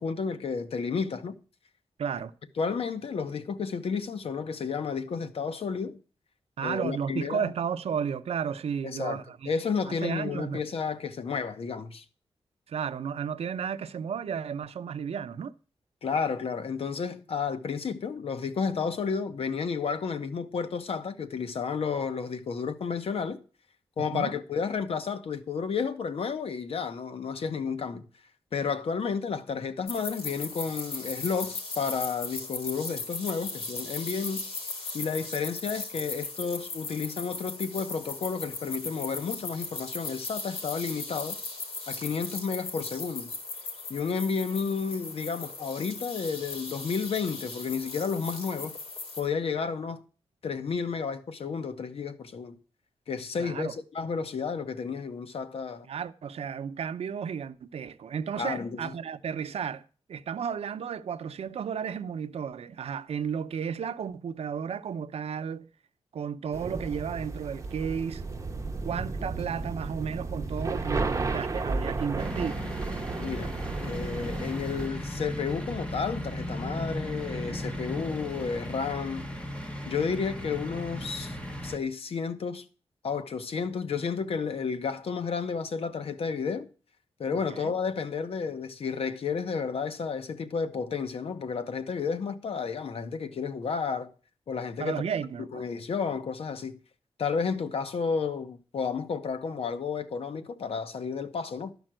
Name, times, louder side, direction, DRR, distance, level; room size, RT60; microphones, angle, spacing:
voice 1, 0.0-1.4 2.6-6.0 6.6-7.5 8.8-12.0 16.0-23.4 24.0-28.1 28.5-34.5 34.9-41.4 41.9-43.3 43.9-48.8 49.2-50.0 50.4-52.6 53.1-55.9 58.4-58.9 73.2-73.5 73.8-79.2 79.9-81.4 81.6-82.6 83.0-86.7 87.2-94.1 94.5-95.0 95.5-96.8 97.2-101.7, left 5 dB, 70° left, 1.1 m, -31 dB
voice 2, 2.0-2.3 6.6-9.5 9.9-10.6 12.7-15.5 24.1-24.3 53.4-53.8 55.9-59.8 60.1-65.7 66.1-68.2 68.8-72.6 87.3-87.7 94.8-95.6, right 7 dB, 80° right, 0.7 m, -33 dB
sound 1, 29.9-49.2, left 3 dB, 90° left, 3.9 m, -38 dB
sound 2, 66.5-74.9, right 3 dB, 30° right, 0.9 m, -33 dB
sound 3, 72.2-81.8, equal, 10° left, 1.4 m, -36 dB
12.5 x 5.3 x 7.6 m
wide cardioid pair, 135°, 10 cm